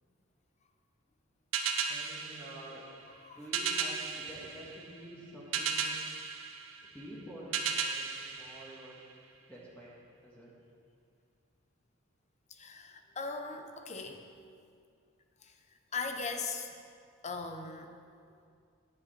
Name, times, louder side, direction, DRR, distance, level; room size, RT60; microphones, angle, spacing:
sound 1, 1.5-9.4, right 6 dB, 75° right, 0.8 m, -36 dB
voice 1, 1.9-2.9 3.3-6.0 6.8-9.0 9.5-10.5, right 1 dB, 10° left, -6 dB, 1.6 m, -48 dB
voice 2, 3.1-3.4 12.5-14.3 15.4-15.6 15.9-16.8 17.2-18.0, left 4 dB, 35° left, 6 dB, 0.8 m, -39 dB
10.0 x 9.5 x 4.3 m, 2.3 s
head